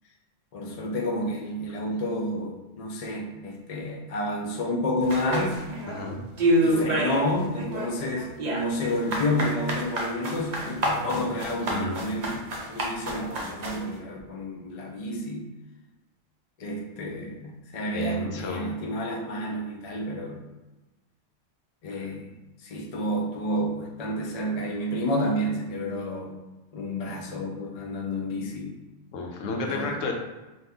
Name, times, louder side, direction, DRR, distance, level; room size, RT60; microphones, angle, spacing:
voice 1, 0.5-5.7 6.6-15.5 16.6-20.4 21.8-22.3 22.6-26.4 26.7-28.8 29.7-30.0, left 1 dB, 65° left, 1 dB, 0.4 m, -30 dB
sound 1, 5.1-6.0 6.4-7.3 7.5-13.8, right 1 dB, 50° right, 0.5 m, -27 dB
voice 2, 5.9-6.2 11.7-12.0 17.9-18.7 21.9-22.0 29.1-30.1, left 3 dB, 80° left, 1 dB, 1.0 m, -32 dB
2.7 x 2.4 x 3.5 m, 1.1 s
omnidirectional pair, 1.3 m